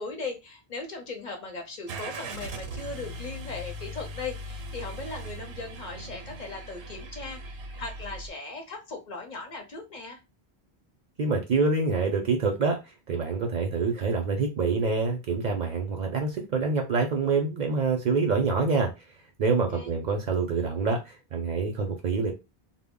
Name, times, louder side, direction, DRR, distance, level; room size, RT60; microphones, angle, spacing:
voice 1, 0.0-10.2 19.7-20.0, left 3 dB, 55° left, 0.7 m, -38 dB
Car / Engine starting, 1.9-8.3, right 1 dB, 80° right, 0.8 m, -39 dB
voice 2, 11.2-12.8 13.1-18.9 19.4-22.3, right 4 dB, 55° right, 0.5 m, -26 dB
2.1 x 2.0 x 3.5 m
omnidirectional pair, 1.0 m